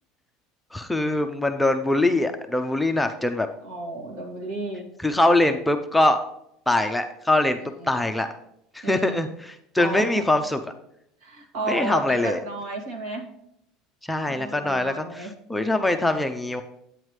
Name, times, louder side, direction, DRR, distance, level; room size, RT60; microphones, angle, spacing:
voice 1, 0.7-3.5 5.0-6.2 6.7-7.6 7.9-8.3 8.7-10.6 11.7-12.4 14.0-16.6, left 2 dB, 5° left, 5 dB, 0.4 m, -23 dB
voice 2, 3.6-4.9 7.8-7.9 8.8-9.2 9.8-10.2 11.2-13.2 14.3-15.3, right 2 dB, 70° right, 0 dB, 2.3 m, -33 dB
9.1 x 8.8 x 3.2 m, 0.76 s
cardioid pair, 155°, 0 cm